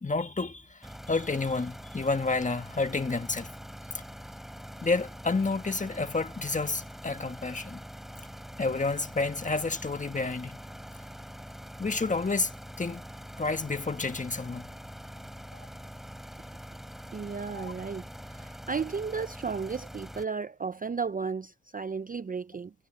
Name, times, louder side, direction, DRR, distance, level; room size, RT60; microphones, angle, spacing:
voice 1, 0.0-3.5 3.9-4.0 4.8-7.8 8.6-10.6 11.8-13.0 13.4-14.7 15.5-15.6 17.5-17.7, left 3 dB, 20° left, 1.5 m, -30 dB
sound 1, 0.8-20.2, equal, ahead, 4.3 m, -44 dB
voice 2, 17.1-22.7, right 5 dB, 25° right, 0.6 m, -34 dB
cardioid pair, 90°, 35 cm